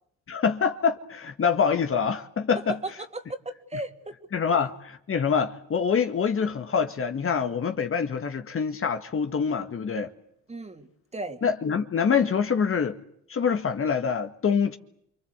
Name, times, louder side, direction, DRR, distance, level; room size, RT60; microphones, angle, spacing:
voice 1, 0.3-2.8 4.3-10.1 11.4-13.0 13.3-14.8, left 6 dB, 45° left, 1.9 m, -25 dB
voice 2, 2.7-4.1 4.5-4.6 10.5-11.4, right 2 dB, 20° right, 2.8 m, -36 dB
28.0 x 23.5 x 8.2 m
cardioid pair, 90°, 30 cm